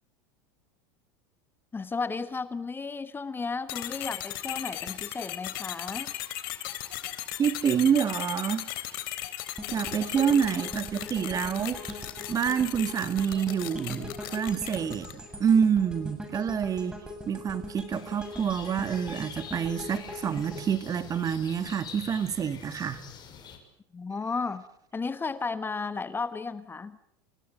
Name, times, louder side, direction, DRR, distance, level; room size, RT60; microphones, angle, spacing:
voice 1, 1.7-6.1 23.9-24.6 24.9-27.0, left 4 dB, 15° left, 1.3 m, -33 dB
sound 1, 3.7-15.3, left 14 dB, 75° left, 3.5 m, -37 dB
voice 2, 7.4-8.6 9.7-12.0 12.3-23.0, right 7 dB, 30° right, 2.0 m, -27 dB
sound 2, 9.6-21.7 22.2-22.3, left 1 dB, 5° right, 7.2 m, -42 dB
sound 3, 17.9-23.6, left 7 dB, 40° left, 6.0 m, -46 dB
29.5 x 17.0 x 8.9 m
supercardioid pair, 105°, 12 cm